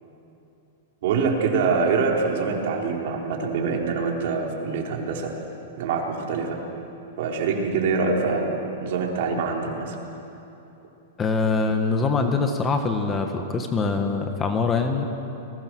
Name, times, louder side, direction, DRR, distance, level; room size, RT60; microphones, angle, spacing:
voice 1, 1.0-5.3 5.8-6.6 7.2-10.0, right 4 dB, 60° right, 0 dB, 4.2 m, -25 dB
voice 2, 11.2-15.0, left 4 dB, 15° left, 5 dB, 1.7 m, -23 dB
30.0 x 21.0 x 6.3 m, 2.9 s
hypercardioid pair, 150°, 0 cm